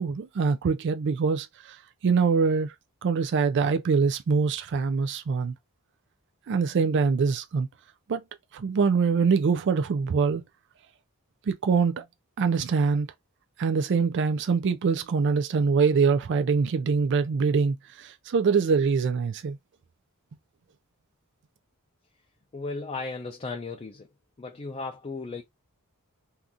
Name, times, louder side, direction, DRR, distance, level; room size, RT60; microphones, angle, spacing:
voice 1, 0.0-1.8 2.0-2.7 3.0-5.5 6.5-7.7 8.1-8.2 8.5-10.4 11.5-12.0 12.4-13.1 13.6-19.6, right 5 dB, 55° right, 0.4 m, -24 dB
voice 2, 22.5-24.1 24.4-25.4, left 3 dB, 25° left, 0.5 m, -35 dB
2.7 x 2.4 x 3.6 m
head